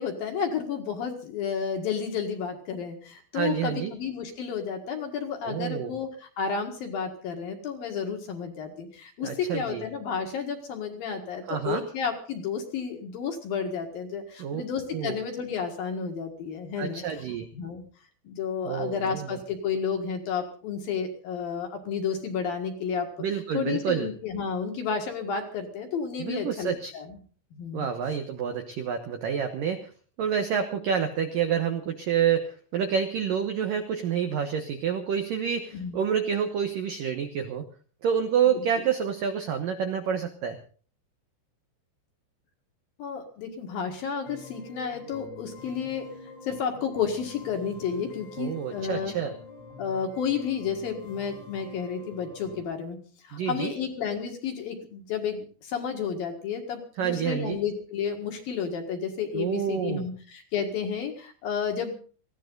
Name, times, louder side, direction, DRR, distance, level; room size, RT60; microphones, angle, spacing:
voice 1, 0.0-17.0 17.5-17.8 18.2-23.1 23.5-27.2 27.6-27.9 35.7-36.0 43.0-46.1 46.4-49.2 49.8-53.0 53.3-61.9, left 6 dB, 55° left, 4 dB, 3.0 m, -31 dB
voice 2, 3.3-3.9 5.5-5.9 9.2-9.8 11.5-11.8 14.4-14.6 14.9-15.2 16.8-17.5 18.7-19.4 23.2-24.1 26.2-26.9 27.7-29.9 30.2-37.7 38.0-40.6 48.4-49.3 53.3-53.7 57.0-57.6 59.3-60.1, right 8 dB, 90° right, 6 dB, 1.9 m, -28 dB
sound 1, 44.3-52.7, left 3 dB, 85° left, 7.4 m, -46 dB
20.5 x 16.0 x 3.9 m, 0.40 s
omnidirectional pair, 5.8 m